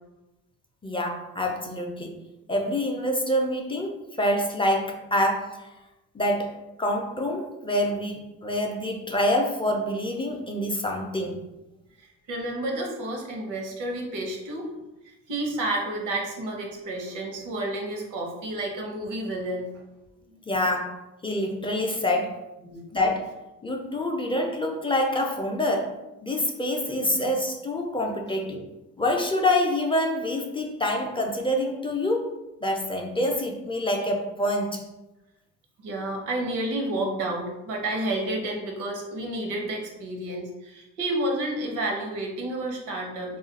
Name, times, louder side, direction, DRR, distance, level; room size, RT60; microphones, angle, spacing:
voice 1, 0.8-2.2 2.5-5.7 6.1-6.5 6.8-11.3 20.5-21.0 21.2-22.4 22.9-23.3 23.6-26.0 26.2-28.7 29.0-32.3 32.6-34.8, left 1 dB, 15° left, 2 dB, 0.4 m, -26 dB
voice 2, 12.0-14.8 15.0-19.7 20.3-20.4 22.6-22.8 27.1-27.3 35.8-43.4, right 1 dB, 85° right, 1 dB, 0.8 m, -30 dB
2.4 x 2.3 x 3.9 m, 0.97 s
cardioid pair, 90°, 30 cm